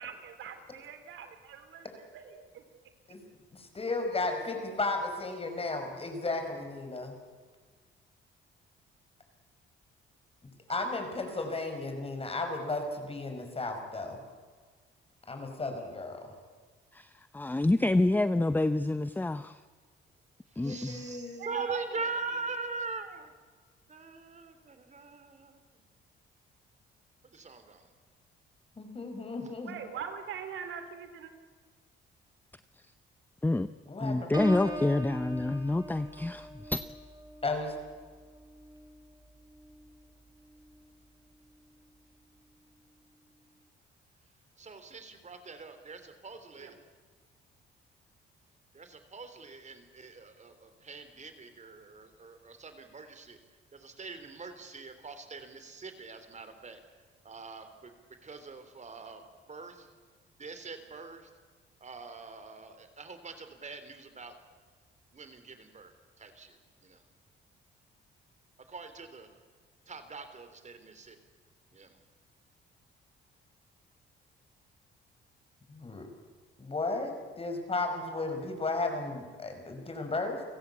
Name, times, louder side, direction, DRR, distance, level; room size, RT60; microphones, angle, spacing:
voice 1, 0.0-2.6 10.7-10.8 11.3-11.4 21.4-22.1 29.6-31.3 46.6-46.8, right 8 dB, 80° right, 8 dB, 3.3 m, -42 dB
voice 2, 3.5-7.1 10.7-14.2 15.3-16.3 20.6-21.5 28.8-29.7 33.9-34.8 37.4-37.7 75.7-76.1 76.6-80.4, left 3 dB, 30° left, 5 dB, 5.8 m, -34 dB
voice 3, 16.9-19.6 20.6-21.0 33.4-33.7 34.0-36.8, left 2 dB, 10° left, 12 dB, 0.7 m, -28 dB
voice 4, 20.6-23.3 23.9-25.6 27.2-27.9 44.6-46.8 48.7-53.4 53.7-56.8 57.2-57.9 58.2-59.2 59.5-59.9 60.4-61.3 61.8-64.3 65.1-66.6 66.8-67.0 68.7-69.3 69.9-71.2 71.7-72.0, right 4 dB, 35° right, 9 dB, 3.7 m, -43 dB
Piano, 34.3-40.0 40.4-40.8, right 1 dB, 20° right, 2.5 m, -41 dB
30.0 x 16.5 x 8.6 m, 1.5 s
cardioid pair, 90°, 20 cm